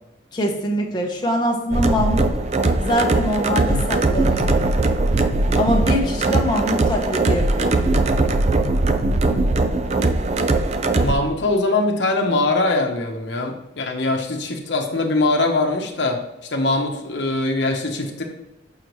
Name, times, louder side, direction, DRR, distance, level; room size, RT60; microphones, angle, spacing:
voice 1, 0.3-2.3 2.8-4.7 5.6-7.9, equal, 20° left, 0 dB, 0.8 m, -23 dB
sound 1, 1.7-11.1, right 2 dB, 35° right, 0.4 m, -20 dB
voice 2, 11.0-16.2 16.5-18.2, left 2 dB, 60° left, 2 dB, 0.9 m, -22 dB
6.7 x 5.7 x 3.1 m, 0.94 s
head